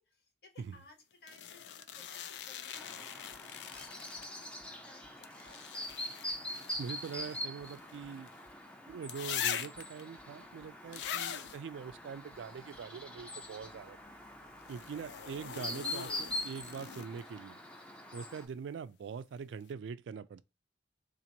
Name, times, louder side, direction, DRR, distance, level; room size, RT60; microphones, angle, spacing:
voice 1, 0.0-3.8 4.1-6.3 14.9-15.3, left 2 dB, 60° left, 1.3 m, -61 dB
sound 1, 1.3-4.5 5.2-8.4 9.1-10.0 10.9-11.6 14.6-17.3 19.2-19.3, left 9 dB, 80° left, 0.4 m, -42 dB
Chirp tweet, 2.7-18.5, left 1 dB, 5° left, 0.5 m, -44 dB
sound 2, 3.3-16.9, equal, 45° left, 1.1 m, -68 dB
voice 2, 6.8-8.3 8.9-14.0 14.7-17.6 18.1-20.4, right 6 dB, 90° right, 0.3 m, -43 dB
2.9 x 2.5 x 3.8 m
head